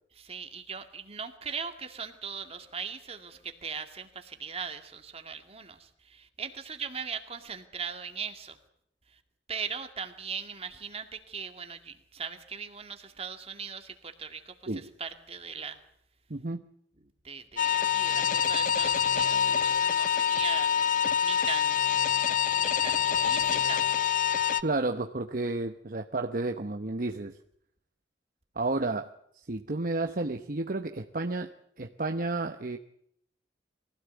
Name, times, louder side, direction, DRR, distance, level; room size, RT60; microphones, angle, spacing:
voice 1, 0.2-8.6 9.5-15.8 17.2-20.7 21.2-21.8 22.5-24.3, right 6 dB, 35° right, 7 dB, 2.2 m, -39 dB
voice 2, 16.3-16.6 24.6-27.3 28.6-29.1 29.3-31.5 31.8-32.8, right 2 dB, 50° right, 5 dB, 1.0 m, -31 dB
sound 1, 17.6-24.6, left 8 dB, 50° left, 0.8 m, -26 dB
23.0 x 16.5 x 8.2 m, 0.71 s
head